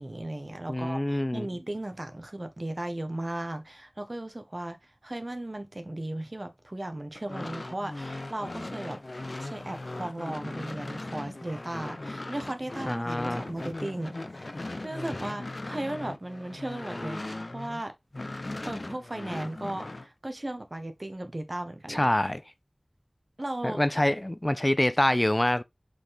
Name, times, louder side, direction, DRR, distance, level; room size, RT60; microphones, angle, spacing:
voice 1, 0.0-9.0 9.4-14.5 14.8-17.9 18.6-22.1 23.4-23.8, right 1 dB, 45° right, 1.3 m, -36 dB
voice 2, 0.7-1.5 12.9-13.4 21.9-22.4 23.6-25.6, left 1 dB, 30° left, 0.5 m, -26 dB
sound 1, 7.2-17.8 18.1-20.1, left 2 dB, 65° left, 0.7 m, -38 dB
6.4 x 5.7 x 3.5 m
wide cardioid pair, 50°, 0 cm